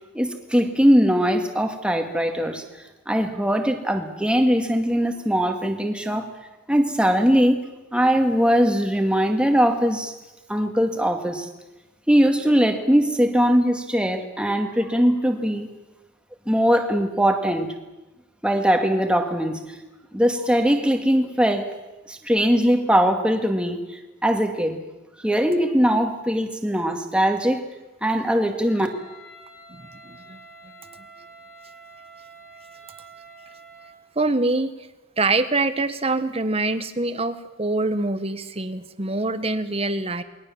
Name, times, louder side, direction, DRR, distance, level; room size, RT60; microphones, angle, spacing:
voice 1, 0.1-2.6 3.1-6.3 6.7-7.6 7.9-10.1 10.5-11.5 12.1-15.7 16.5-17.7 18.4-19.8 20.1-21.7 22.1-24.8 25.2-27.6 28.0-28.9, equal, 5° right, 4 dB, 2.2 m, -21 dB
Wind instrument woodwind instrument, 28.7-34.0, right 2 dB, 75° left, 7.6 m, -47 dB
voice 2, 29.7-30.4 34.2-34.7 35.2-40.2, right 2 dB, 30° right, 11 dB, 1.3 m, -25 dB
28.0 x 21.5 x 7.3 m, 1.1 s
head